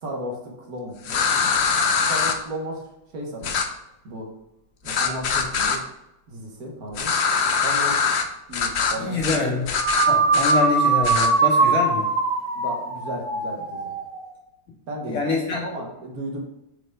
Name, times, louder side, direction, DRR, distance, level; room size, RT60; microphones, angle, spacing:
voice 1, 0.0-2.9 3.1-3.6 4.0-4.3 4.8-5.8 6.3-7.1 7.6-8.0 8.5-9.5 12.5-13.9 14.9-15.3 15.5-16.4, right 1 dB, 55° right, 0 dB, 1.8 m, -34 dB
sound 1, 1.0-2.3 3.4-3.6 4.9-5.8 6.9-8.2 8.5-8.9 9.2-9.4 9.6-10.5 11.0-11.3, left 5 dB, 75° left, 0.6 m, -22 dB
voice 2, 9.0-9.6 10.1-12.1 15.0-15.6, left 3 dB, 50° left, -2 dB, 2.0 m, -25 dB
sound 2, 9.7-14.3, right 4 dB, 80° right, 2.0 m, -21 dB
6.7 x 4.7 x 3.8 m, 0.86 s
omnidirectional pair, 2.0 m